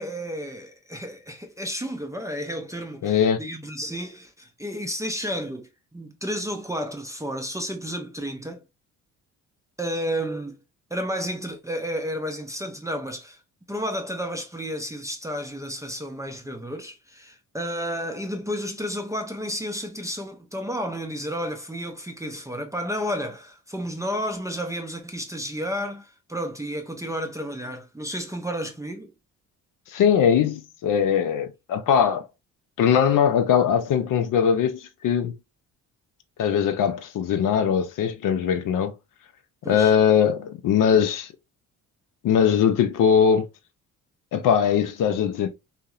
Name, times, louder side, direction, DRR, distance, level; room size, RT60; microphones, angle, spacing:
voice 1, 0.0-8.6 9.8-10.6 10.9-13.4 13.7-29.1 39.6-39.9, equal, 10° right, 0.4 m, -32 dB
voice 2, 3.0-3.4 29.9-32.2 32.8-35.3 36.4-38.9 39.7-41.3 42.2-43.5 44.3-45.5, left 8 dB, 55° left, 0.5 m, -21 dB
2.6 x 2.0 x 2.3 m
supercardioid pair, 55°, 38 cm